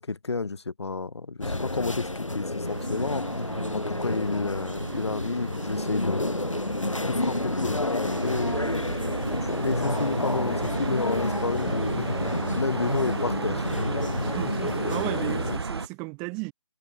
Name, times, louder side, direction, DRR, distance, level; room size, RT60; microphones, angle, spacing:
voice 1, 0.0-3.2 3.7-6.3 7.0-9.0 9.3-12.1 12.5-13.7, left 4 dB, 60° left, 0.9 m, -31 dB
sound 1, 1.4-15.6, left 2 dB, 85° left, 1.2 m, -30 dB
sound 2, 2.6-15.9, right 4 dB, 55° right, 0.7 m, -34 dB
voice 2, 9.9-10.2 14.2-16.5, right 33 dB, 5° right, 0.5 m, -35 dB
figure-of-eight pair, 155°, 16 cm